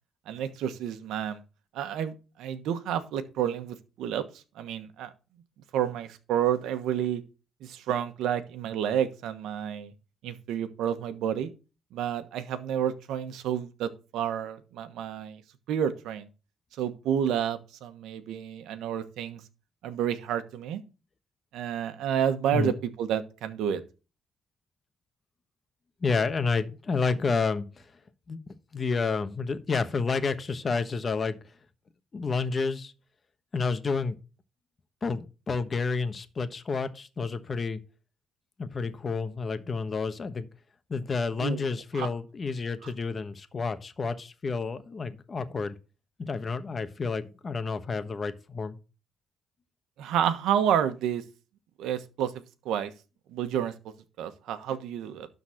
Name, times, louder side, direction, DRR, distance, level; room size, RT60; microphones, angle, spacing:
voice 1, 0.3-1.4 1.7-4.2 4.6-5.1 5.7-7.2 7.6-9.9 10.2-11.5 11.9-15.4 15.7-16.3 16.8-19.4 19.8-20.8 21.5-23.8 41.4-41.6 41.9-42.1 42.8-42.9 50.0-51.2 51.8-52.3 52.6-52.9 53.3-53.7 54.2-55.3, right 9 dB, 85° right, 1.2 m, -30 dB
voice 2, 26.0-27.9 28.3-28.4 28.7-31.4 32.1-32.9 33.5-34.1 35.0-37.8 38.6-40.5 40.9-45.8 46.2-48.8, left 4 dB, 40° left, 1.2 m, -30 dB
12.0 x 4.1 x 6.5 m
cardioid pair, 90°, 0 cm